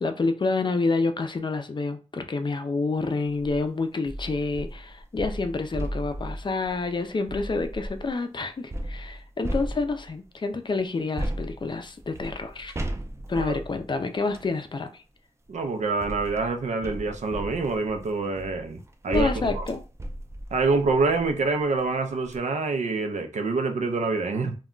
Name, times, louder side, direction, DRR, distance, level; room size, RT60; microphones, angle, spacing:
voice 1, 0.0-12.7 13.3-15.0 19.1-19.8, left 3 dB, 40° left, 0.4 m, -28 dB
sound 1, 3.2-3.6 4.1-8.1 8.7-10.3 11.2-14.5 15.5-21.4 21.8-21.9 22.2-22.4, right 1 dB, 25° right, 0.4 m, -35 dB
voice 2, 15.5-19.7 20.5-24.6, right 3 dB, 80° right, 0.5 m, -26 dB
2.2 x 2.1 x 3.7 m
wide cardioid pair, 90°, 12 cm